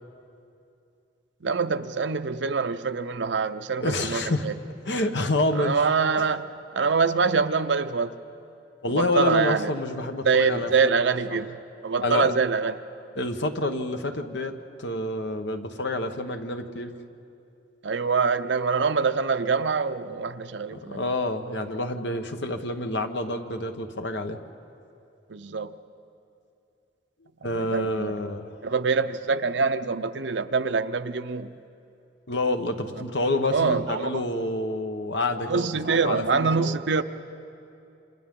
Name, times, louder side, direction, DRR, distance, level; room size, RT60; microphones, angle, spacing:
voice 1, 1.4-4.5 5.5-8.2 8.9-9.7 10.2-12.8 17.8-21.2 25.3-25.7 27.4-28.1 28.6-31.5 33.5-34.2 35.5-37.0, right 5 dB, 80° right, 10 dB, 0.7 m, -25 dB
voice 2, 3.8-4.5 4.9-5.8 6.2-6.3 8.8-11.4 12.0-12.3 13.2-14.5 14.8-16.9 20.7-24.4 27.4-28.6 32.3-36.7, left 2 dB, 80° left, 6 dB, 1.2 m, -28 dB
28.0 x 27.0 x 3.8 m, 2.7 s
head